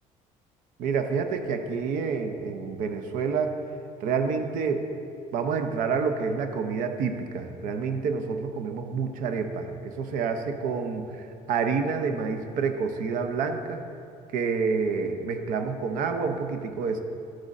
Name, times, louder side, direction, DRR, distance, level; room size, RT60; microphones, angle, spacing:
voice 1, 0.8-3.5 4.0-4.8 5.3-11.0 11.5-13.8 14.3-17.0, right 5 dB, 70° right, 6 dB, 0.6 m, -28 dB
12.0 x 6.3 x 2.5 m, 2.5 s
cardioid pair, 175°, 15 cm